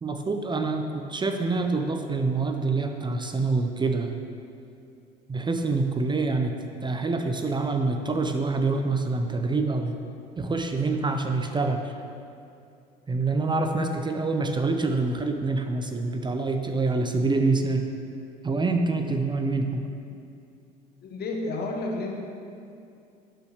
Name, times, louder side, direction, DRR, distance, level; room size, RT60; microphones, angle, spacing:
voice 1, 0.0-4.1 5.3-6.6 6.8-10.0 10.4-11.9 13.1-17.8 18.4-19.9, right 3 dB, 20° right, 5 dB, 0.6 m, -26 dB
voice 2, 21.0-22.1, left 2 dB, 50° left, 1 dB, 1.2 m, -31 dB
11.5 x 5.5 x 3.4 m, 2.5 s
hypercardioid pair, 65°, 20 cm